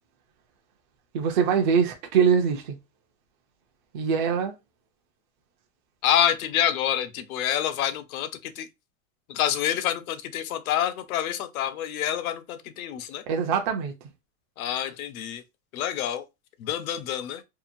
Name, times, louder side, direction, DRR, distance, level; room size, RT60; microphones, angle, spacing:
voice 1, 1.1-2.8 3.9-4.5 13.3-13.9, right 7 dB, 35° right, 0.4 m, -23 dB
voice 2, 6.0-8.7 9.3-13.2 14.6-15.4 15.7-16.2 16.6-17.4, left 10 dB, 90° left, 0.6 m, -27 dB
2.8 x 2.1 x 2.5 m
supercardioid pair, 165°, 42 cm